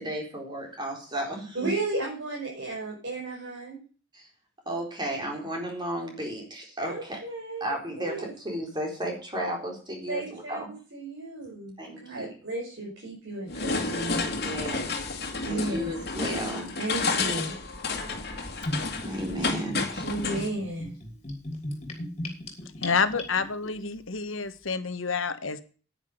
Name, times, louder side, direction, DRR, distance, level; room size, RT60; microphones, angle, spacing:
voice 1, 0.0-1.7 4.1-4.3 4.7-7.2 7.6-10.7 11.8-12.3 14.4-14.9 15.5-16.7 19.0-20.0, right 1 dB, 25° right, 1 dB, 4.1 m, -33 dB
voice 2, 1.5-3.8 6.9-8.3 10.1-11.7 12.0-14.2 15.4-15.9 16.8-17.6 20.0-20.9, right 2 dB, 60° right, -4 dB, 5.6 m, -34 dB
sound 1, 13.5-20.5, left 3 dB, 50° left, 2.1 m, -31 dB
Gurgling / Bathtub (filling or washing), 18.6-23.7, left 1 dB, 35° left, 3.3 m, -36 dB
voice 3, 22.8-25.6, left 5 dB, 80° left, 11 dB, 1.3 m, -28 dB
10.0 x 9.8 x 5.1 m, 0.38 s
head